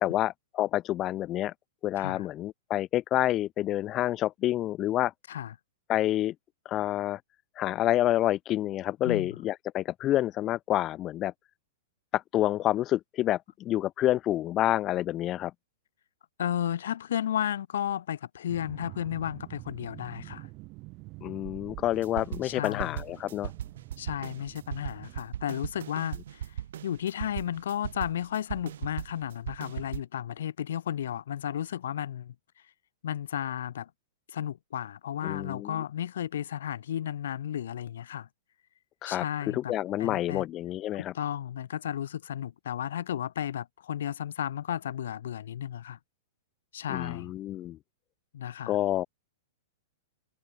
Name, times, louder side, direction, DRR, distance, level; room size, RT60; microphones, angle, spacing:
voice 1, 0.0-1.5 1.8-5.1 5.9-6.3 6.7-7.2 7.6-11.3 12.1-15.5 21.2-23.5 35.2-35.8 39.0-41.1 46.9-47.8 48.7-49.1, left 13 dB, 20° left, 0.5 m, -28 dB
voice 2, 16.4-20.5 22.4-23.0 24.0-26.5 26.8-32.3 33.0-33.9 34.3-38.3 39.0-39.7 40.0-40.5 40.9-46.0 46.7-47.3 48.3-48.8, left 10 dB, 75° left, 0.9 m, -33 dB
sound 1, 18.5-25.3, right 23 dB, 30° right, 2.1 m, -47 dB
sound 2, 21.9-30.0, right 11 dB, 70° right, 0.4 m, -38 dB
supercardioid pair, 165°, 0 cm